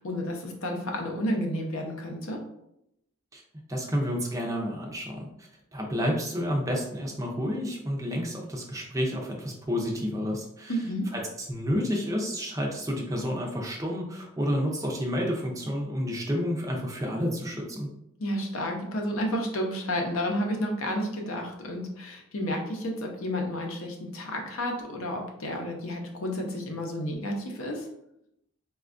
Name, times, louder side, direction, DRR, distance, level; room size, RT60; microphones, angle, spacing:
voice 1, 0.0-2.4 10.7-11.1 18.2-27.9, equal, 70° left, 2 dB, 0.6 m, -31 dB
voice 2, 3.7-5.3 5.7-10.7 11.1-11.2 11.5-17.9, equal, 15° right, 0 dB, 0.4 m, -30 dB
4.2 x 2.2 x 2.4 m, 0.79 s
head